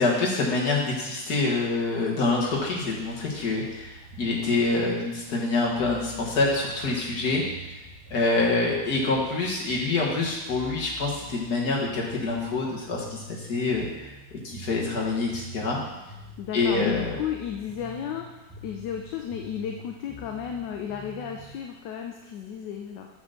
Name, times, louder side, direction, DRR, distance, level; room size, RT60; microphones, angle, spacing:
voice 1, 0.0-7.4 8.1-14.1 14.4-15.8 16.5-17.1, left 3 dB, 60° left, -3 dB, 2.1 m, -26 dB
sound 1, 1.6-21.6, right 1 dB, 10° left, 1.1 m, -46 dB
voice 2, 16.4-23.1, left 8 dB, 80° left, 3 dB, 1.3 m, -33 dB
8.2 x 4.0 x 6.5 m, 1.1 s
omnidirectional pair, 1.9 m